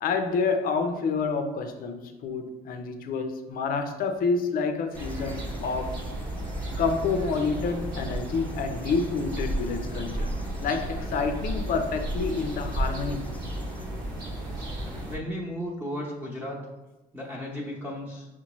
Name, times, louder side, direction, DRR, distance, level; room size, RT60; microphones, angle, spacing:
voice 1, 0.0-6.0 6.8-10.3 10.6-13.3, left 4 dB, 60° left, 6 dB, 0.6 m, -28 dB
sound 1, 4.9-15.1, left 1 dB, 10° left, 0.3 m, -39 dB
sound 2, 5.0-15.2, right 1 dB, 65° right, 1.1 m, -34 dB
voice 2, 15.0-16.6 17.1-18.3, equal, 10° right, -5 dB, 0.9 m, -34 dB
5.8 x 2.2 x 3.0 m, 1.1 s
cardioid pair, 110°, 17 cm